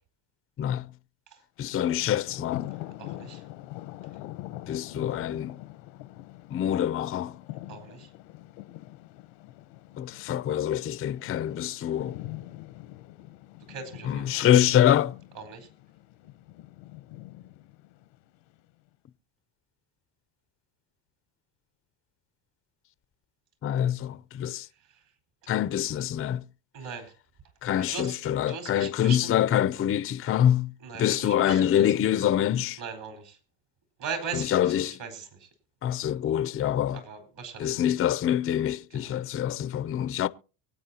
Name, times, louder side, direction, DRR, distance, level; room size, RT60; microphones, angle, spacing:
Thunder, 1.6-18.6, left 16 dB, 85° left, 1.0 m, -44 dB
voice 1, 1.6-2.7 4.7-5.6 6.5-7.4 10.0-12.2 14.0-15.1 23.6-24.7 25.5-26.4 27.6-30.7 31.0-32.8 34.3-35.0 35.8-37.0 37.6-40.3, left 10 dB, 30° left, 0.5 m, -25 dB
voice 2, 3.0-3.4 7.7-8.1 13.7-14.5 15.3-15.7 24.9-25.0 26.7-27.1 27.8-28.1 28.5-29.3 30.8-32.0 32.8-33.4 34.0-35.5 36.9-37.9 38.9-39.1, right 6 dB, 60° right, 4.5 m, -39 dB
24.0 x 8.7 x 2.8 m
supercardioid pair, 90°, 48 cm